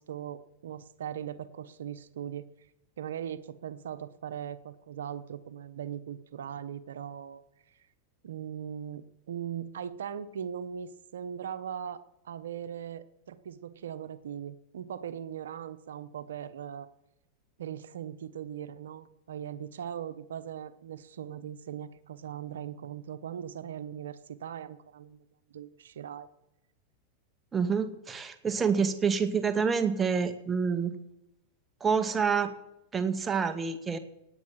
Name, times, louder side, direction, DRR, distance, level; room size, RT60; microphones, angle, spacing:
voice 1, 0.0-2.4 3.0-7.4 7.7-7.8 8.2-16.9 17.6-25.2 25.5-26.3, right 9 dB, 85° right, 14 dB, 1.0 m, -39 dB
voice 2, 27.5-30.9 31.8-32.5 32.9-34.0, right 6 dB, 20° right, 9 dB, 1.9 m, -27 dB
18.5 x 8.8 x 7.5 m, 0.89 s
hypercardioid pair, 120°, 0 cm